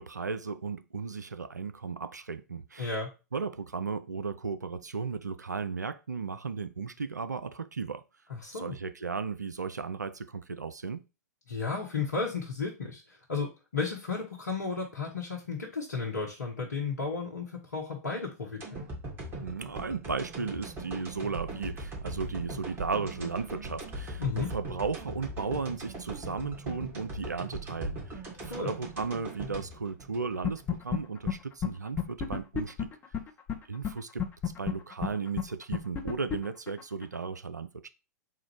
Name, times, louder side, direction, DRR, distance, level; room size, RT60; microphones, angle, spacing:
voice 1, 0.0-2.9 3.3-8.0 8.5-11.0 19.4-32.9 33.7-34.2 34.6-37.9, right 5 dB, 85° right, 0.4 m, -35 dB
voice 2, 2.8-3.1 8.3-8.7 11.5-18.8 24.2-24.5 28.4-28.7, left 4 dB, 75° left, 1.0 m, -33 dB
sound 1, 18.6-30.8 31.2-31.3, right 2 dB, 25° right, 1.8 m, -40 dB
sound 2, 30.4-31.0 31.3-31.4 31.6-31.7 32.0-33.5 33.8-33.9 34.2-37.2, left 8 dB, 20° left, 0.9 m, -30 dB
3.8 x 2.5 x 4.6 m
figure-of-eight pair, 100°, 9 cm